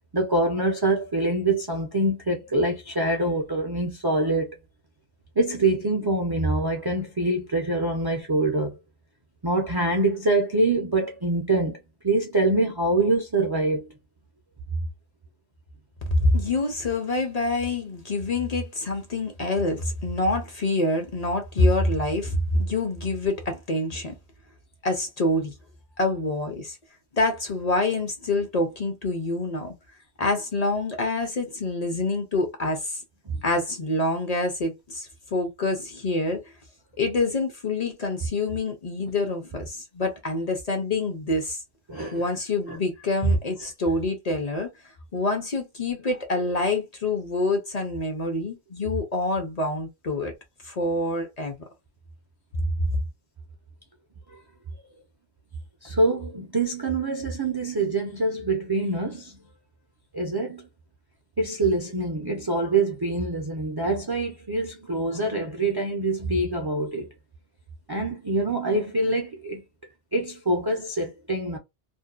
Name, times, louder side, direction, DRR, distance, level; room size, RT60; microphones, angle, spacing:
voice 1, 0.1-4.5 5.4-8.8 9.4-11.8 12.0-13.9 33.3-33.4 41.9-42.3 42.7-42.8 43.2-43.3 54.3-54.4 55.8-59.4 60.1-60.7 61.4-67.1 67.9-69.6 70.1-71.6, right 2 dB, 40° right, 0.3 m, -25 dB
voice 2, 16.2-24.2 24.8-25.5 26.0-26.8 27.1-29.7 30.2-33.0 33.4-36.4 37.0-41.6 42.1-44.7 45.1-50.3 50.6-51.6, left 2 dB, 45° left, 0.6 m, -26 dB
2.6 x 2.1 x 2.3 m
omnidirectional pair, 1.1 m